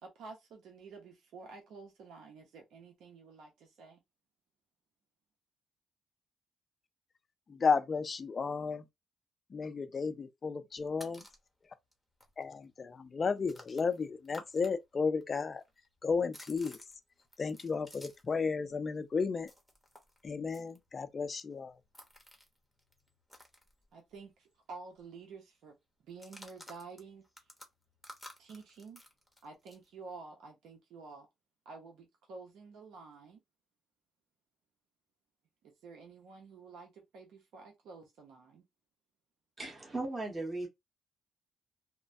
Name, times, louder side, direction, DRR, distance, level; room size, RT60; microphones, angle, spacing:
voice 1, 0.0-4.0 23.9-25.8 26.0-27.2 28.4-29.0 29.4-31.3 31.6-33.4 35.8-38.6, right 4 dB, 80° right, 0.8 m, -50 dB
voice 2, 7.5-8.8 9.5-11.2 12.4-15.6 16.0-16.8 17.4-19.5 20.2-21.8, left 5 dB, 40° left, 0.5 m, -33 dB
sound 1, 10.7-11.5 11.9-12.0 12.2-14.7 15.0-18.4 18.7-24.3 24.6-24.7 25.0-25.3 26.1-29.9, left 1 dB, 5° right, 1.0 m, -55 dB
voice 3, 39.6-40.7, right 2 dB, 25° right, 1.2 m, -37 dB
3.0 x 2.1 x 2.6 m
cardioid pair, 90°, 0 cm